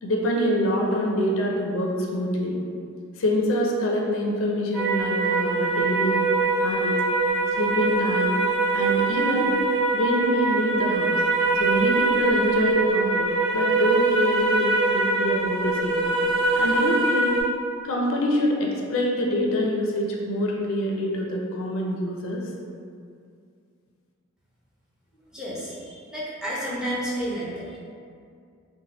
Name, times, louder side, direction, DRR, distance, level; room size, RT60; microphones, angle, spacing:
voice 1, 0.0-2.5 3.2-6.3 6.6-7.0 7.6-8.3 8.7-9.5 9.9-11.2 11.6-16.2 16.5-17.4 17.8-22.4, equal, 70° left, -1 dB, 0.4 m, -25 dB
sound 1, 4.7-17.4, right 3 dB, 25° right, 1.3 m, -23 dB
voice 2, 25.3-27.8, equal, 5° right, -8 dB, 0.5 m, -31 dB
3.2 x 2.1 x 2.8 m, 2.3 s
head